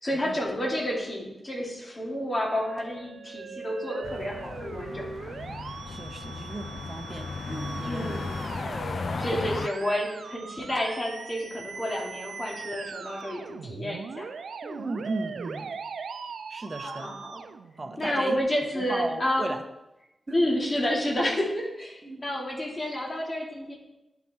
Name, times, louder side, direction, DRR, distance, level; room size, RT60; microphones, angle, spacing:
voice 1, 0.0-5.3 7.9-8.3 8.9-14.3 16.8-17.4 18.0-19.5 20.3-23.7, left 1 dB, 35° left, -3 dB, 2.7 m, -30 dB
Musical instrument, 2.5-18.4, right 5 dB, 85° right, 0.5 m, -40 dB
sound 1, 4.0-9.7, left 4 dB, 60° left, 0.3 m, -35 dB
voice 2, 5.1-5.6 5.9-8.2 14.6-15.7 16.5-17.1 17.8-18.4 18.7-19.6 20.3-20.5 22.0-22.2, right 2 dB, 30° right, 6 dB, 1.0 m, -36 dB
11.0 x 6.0 x 4.4 m, 0.93 s
wide cardioid pair, 80°, 0 cm